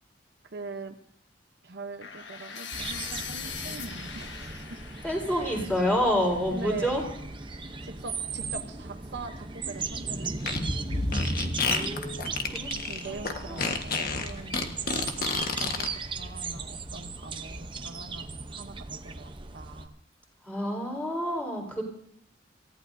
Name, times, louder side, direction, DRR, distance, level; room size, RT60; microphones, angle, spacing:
voice 1, 0.5-0.9 1.6-4.8 5.4-5.6 6.5-7.1 7.8-10.6 10.9-11.1 11.7-12.1 12.8-14.8 15.6-19.9, right 3 dB, 60° right, 5 dB, 0.9 m, -42 dB
sound 1, 2.0-7.9, left 6 dB, 70° left, 1.4 m, -42 dB
sound 2, 2.7-19.9, right 4 dB, 25° right, 0.8 m, -37 dB
voice 2, 5.0-7.0 11.3-12.8 13.0-13.6 20.5-21.8, equal, 10° left, -1 dB, 4.2 m, -29 dB
Fart, 10.4-15.9, left 3 dB, 55° left, 1.5 m, -29 dB
28.0 x 15.0 x 2.7 m, 0.68 s
head